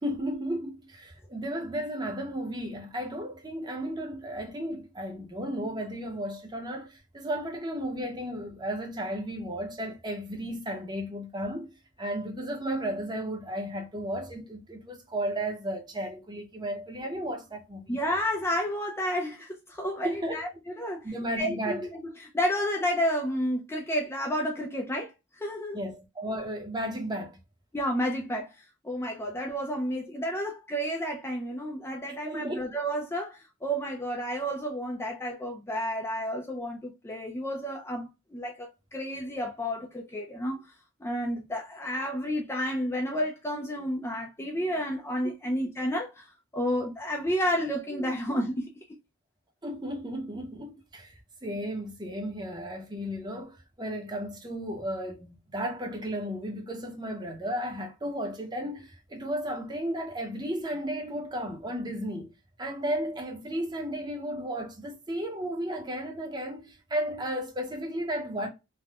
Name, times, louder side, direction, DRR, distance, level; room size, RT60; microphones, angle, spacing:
voice 1, 0.0-11.7 12.0-18.0 20.0-20.4 21.0-21.8 25.7-27.4 32.2-32.7 47.9-48.1 49.6-51.1 51.4-62.3 62.6-68.5, equal, 20° right, 0.7 m, -34 dB
voice 2, 17.9-21.1 21.4-25.8 27.7-40.6 41.0-48.7, equal, 10° left, 0.4 m, -31 dB
3.4 x 2.1 x 2.3 m
head